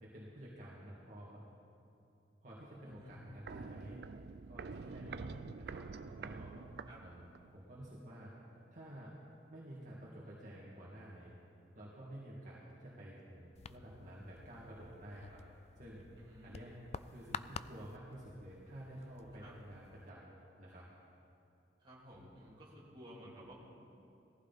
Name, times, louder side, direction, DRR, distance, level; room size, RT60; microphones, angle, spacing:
voice 1, 0.0-1.4 2.4-4.0 4.5-5.2 5.6-5.9 6.2-6.6 7.0-8.3 8.7-9.2 9.5-11.3 11.7-15.4 15.8-16.1 16.4-16.8 17.1-20.3 20.6-20.9, right 1 dB, 45° right, -7 dB, 2.2 m, -51 dB
voice 2, 2.8-3.3 4.8-5.4 6.9-7.0 16.2-16.8 19.4-19.5 21.8-23.6, equal, 25° right, -6 dB, 3.1 m, -54 dB
Walk footsteps, 2.9-7.6 7.9-8.0, right 4 dB, 65° right, 0.4 m, -47 dB
sound 1, 13.6-20.1, left 6 dB, 35° left, 0.3 m, -50 dB
18.0 x 15.0 x 4.1 m, 2.7 s
head